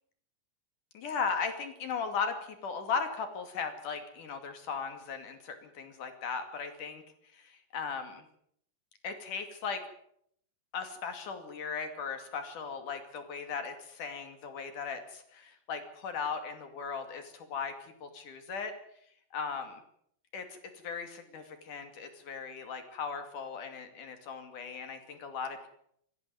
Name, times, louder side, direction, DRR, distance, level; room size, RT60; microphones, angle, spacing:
voice 1, 0.9-7.0 7.3-8.2 9.0-9.8 10.7-17.7 18.0-18.7 19.3-19.6 20.3-20.6 20.8-25.7, left 5 dB, 50° left, 7 dB, 3.3 m, -37 dB
19.5 x 15.0 x 9.3 m, 0.69 s
omnidirectional pair, 5.6 m